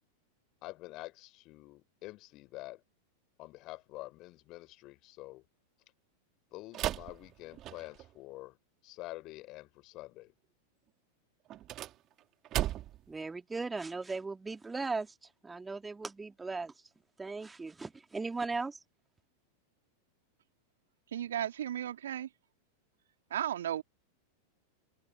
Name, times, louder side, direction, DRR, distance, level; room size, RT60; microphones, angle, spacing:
voice 1, 0.6-2.8 3.4-5.4 6.5-8.6 8.8-10.3, left 19 dB, 40° left, 3.9 m, -47 dB
sound 1, 6.7-8.1 11.5-13.1, right 13 dB, 35° right, 2.8 m, -36 dB
voice 2, 13.1-15.1 15.4-16.7 17.2-18.8, right 3 dB, 10° right, 2.7 m, -37 dB
voice 3, 21.1-22.3 23.3-23.8, right 10 dB, 60° right, 2.8 m, -34 dB
figure-of-eight pair, 90°, 0 cm